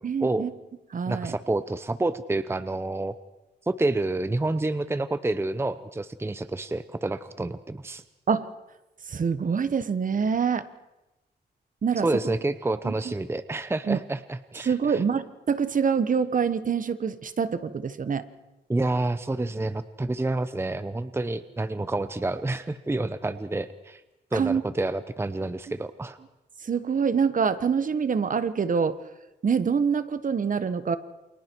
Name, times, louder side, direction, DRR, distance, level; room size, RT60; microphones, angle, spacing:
voice 1, 0.0-0.5 0.9-1.3 8.3-8.5 9.1-10.7 11.8-12.1 12.8-13.1 13.8-14.0 14.6-18.3 24.3-24.6 26.6-29.0 29.4-31.0, right 6 dB, 50° right, 12 dB, 1.2 m, -25 dB
voice 2, 1.1-3.1 3.7-8.0 12.0-15.0 18.7-24.0 24.3-26.2, right 2 dB, 15° right, 12 dB, 0.8 m, -28 dB
29.0 x 27.5 x 4.7 m, 0.98 s
wide cardioid pair, 130°, 18 cm